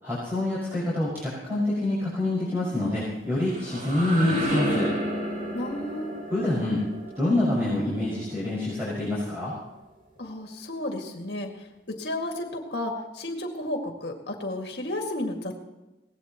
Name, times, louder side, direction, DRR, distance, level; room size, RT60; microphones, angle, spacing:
voice 1, 0.0-4.9 6.3-6.8 7.2-9.5, left 1 dB, 15° right, -8 dB, 5.9 m, -26 dB
sound 1, 3.2-8.9, right 1 dB, 45° right, 5.6 m, -32 dB
voice 2, 5.5-6.2 10.2-15.6, left 1 dB, 65° left, 3 dB, 2.1 m, -33 dB
23.5 x 18.5 x 3.1 m, 1.0 s
head